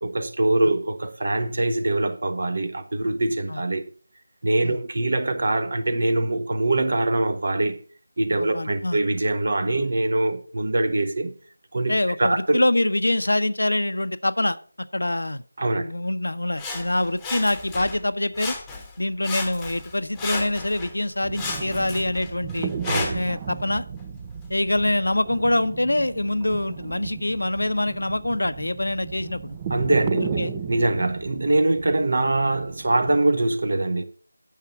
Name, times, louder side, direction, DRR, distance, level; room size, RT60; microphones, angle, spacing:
voice 1, 0.0-3.8 4.4-7.8 8.2-11.3 11.7-11.9 12.2-12.6 15.6-15.8 22.9-23.2 29.7-30.2 30.7-34.0, right 2 dB, 50° right, 1.3 m, -23 dB
voice 2, 8.4-9.0 11.9-14.6 14.9-15.4 15.8-18.5 19.0-22.7 23.1-23.8 24.5-29.6 30.2-30.5, left 1 dB, 70° left, 0.8 m, -25 dB
Sawing, 16.6-18.0 18.3-19.0 19.2-20.9 21.3-23.3 24.0-24.1, left 3 dB, 5° left, 1.2 m, -33 dB
sound 1, 21.2-33.2, right 7 dB, 20° right, 0.5 m, -35 dB
9.4 x 6.7 x 5.8 m
figure-of-eight pair, 165°, 0 cm